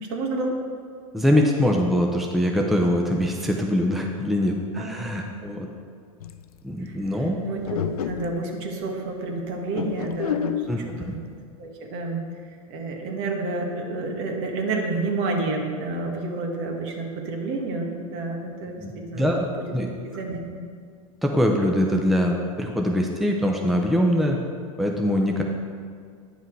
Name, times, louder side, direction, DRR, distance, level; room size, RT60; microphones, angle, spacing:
voice 1, 0.1-0.6 4.7-4.9 5.2-5.4 6.8-11.2 11.6-19.3 19.6-19.7 20.0-20.6, right 3 dB, 60° right, 1 dB, 1.7 m, -30 dB
voice 2, 1.1-5.7 6.6-7.4 10.7-11.1 18.8-19.9 21.2-24.4 24.8-25.4, equal, ahead, 1 dB, 0.7 m, -23 dB
sound 1, 6.2-6.5 7.7-8.4 9.7-10.8, left 9 dB, 90° left, 0.5 m, -29 dB
9.8 x 5.7 x 4.6 m, 2.1 s
hypercardioid pair, 110°, 18 cm